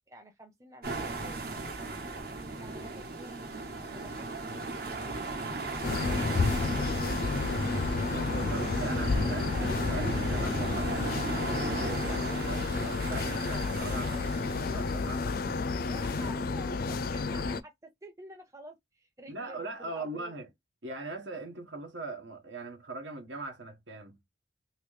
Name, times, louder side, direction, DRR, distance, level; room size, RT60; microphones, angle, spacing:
voice 1, 0.1-2.0 2.6-6.8 9.2-9.7 15.8-17.7 18.0-20.3, right 1 dB, 15° right, 0.8 m, -51 dB
sound 1, 0.8-16.3, right 3 dB, 55° right, 1.1 m, -37 dB
sound 2, 5.8-17.6, left 4 dB, 50° left, 0.4 m, -31 dB
voice 2, 8.1-15.7 19.3-20.5 20.8-24.2, right 2 dB, 80° right, 1.3 m, -41 dB
3.1 x 2.9 x 3.2 m
head